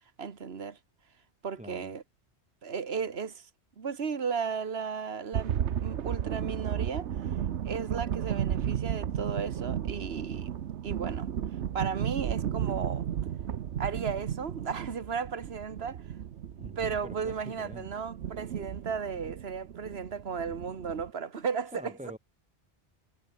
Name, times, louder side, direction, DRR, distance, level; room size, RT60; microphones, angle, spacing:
voice 1, 0.2-0.8 1.4-2.0 2.6-3.5 3.8-5.6 5.8-7.1 7.6-10.5 10.8-11.3 11.7-13.1 13.8-16.0 16.8-21.9, right 6 dB, 65° right, 1.8 m, -35 dB
voice 2, 1.6-1.9 16.5-17.9 21.7-22.2, right 1 dB, 5° right, 3.5 m, -45 dB
sound 1, 5.3-21.1, right 9 dB, 80° right, 1.1 m, -34 dB
omnidirectional pair, 1.1 m